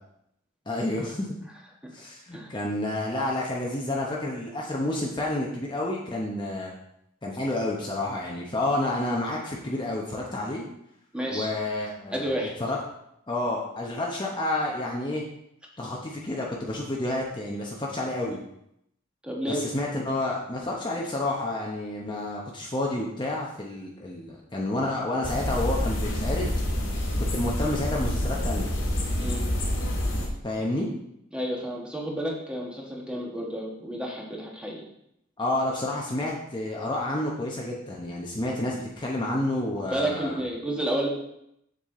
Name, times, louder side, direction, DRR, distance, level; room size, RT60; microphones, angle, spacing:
voice 1, 0.7-1.4 1.9-6.7 7.2-10.6 11.3-12.3 12.6-12.8 13.3-15.2 15.8-18.4 19.5-26.5 27.3-28.7 30.4-30.9 35.4-40.4, left 1 dB, 25° left, -2 dB, 0.9 m, -29 dB
voice 2, 2.3-2.6 11.1-11.5 12.1-12.5 19.2-19.6 29.2-29.5 31.3-34.8 39.9-41.1, right 1 dB, 5° right, -2 dB, 1.4 m, -31 dB
sound 1, 25.2-30.3, left 1 dB, 75° left, 2.0 m, -27 dB
7.2 x 7.2 x 3.8 m, 0.78 s
head